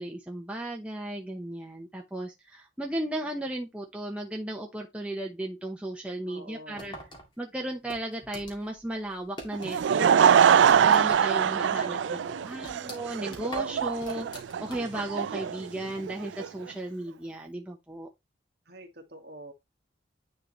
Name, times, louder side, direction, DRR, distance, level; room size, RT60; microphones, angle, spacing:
voice 1, 0.0-6.9 7.4-12.2 12.4-14.3 14.6-18.1, right 1 dB, 5° right, 0.9 m, -35 dB
voice 2, 6.3-7.1 12.0-12.9 18.6-19.5, right 1 dB, 55° right, 1.7 m, -47 dB
sound 1, 6.8-9.9 10.2-11.4 11.7-11.8 12.2-15.1, equal, 25° left, 1.9 m, -45 dB
Laughter / Crowd, 9.5-16.5, right 8 dB, 75° right, 0.3 m, -23 dB
9.7 x 4.0 x 3.1 m
head